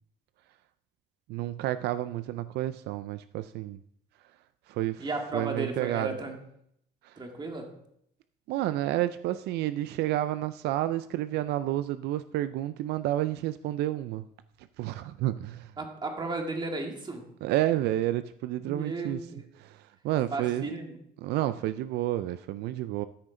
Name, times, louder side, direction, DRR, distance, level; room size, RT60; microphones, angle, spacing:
voice 1, 1.3-3.8 4.7-5.1 5.3-6.2 7.0-7.2 8.5-14.2 14.8-15.7 17.4-19.2 19.6-20.7 21.2-23.0, right 14 dB, 80° right, 13 dB, 0.4 m, -30 dB
voice 2, 5.0-6.4 7.2-7.7 15.8-17.2 18.7-19.4 20.3-20.9, right 3 dB, 25° right, 3 dB, 1.9 m, -34 dB
13.0 x 6.4 x 3.7 m, 0.72 s
cardioid pair, 110°, 17 cm